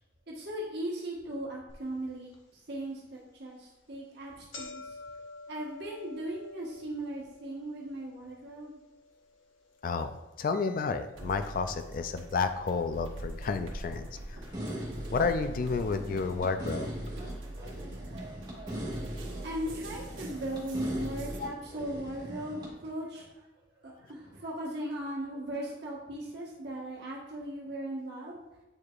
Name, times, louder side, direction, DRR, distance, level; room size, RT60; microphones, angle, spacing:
voice 1, 0.3-5.0 5.5-8.8 19.4-23.5 23.8-28.4, right 1 dB, 55° right, -4 dB, 1.2 m, -38 dB
sound 1, 1.7-1.8 2.3-2.4 3.3-3.5 3.8-3.9 4.1-12.4 12.6-13.4 14.2-14.3 15.2-15.3 15.6-15.7 16.2-16.4, left 3 dB, 75° left, 1.1 m, -50 dB
voice 2, 9.8-14.4 15.1-16.9 21.4-21.5, left 4 dB, 45° left, 9 dB, 0.3 m, -31 dB
sound 2, 11.1-21.4, right 1 dB, 80° right, 1.2 m, -43 dB
sound 3, 14.5-22.7, equal, 20° right, 1.8 m, -40 dB
8.5 x 4.7 x 2.4 m, 1.1 s
head